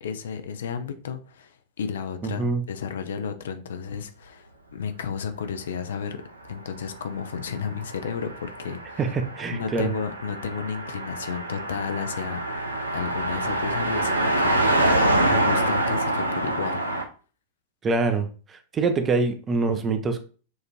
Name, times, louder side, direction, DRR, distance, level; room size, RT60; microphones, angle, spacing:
voice 1, 0.0-6.2 6.5-9.0 9.5-16.8, left 6 dB, 65° left, 0.5 m, -33 dB
voice 2, 2.2-2.6 9.0-9.9 17.8-20.2, right 3 dB, 20° right, 0.6 m, -25 dB
Car passing by, 6.9-17.0, right 1 dB, 80° right, 0.6 m, -26 dB
6.2 x 2.5 x 3.0 m
figure-of-eight pair, 95°, 0 cm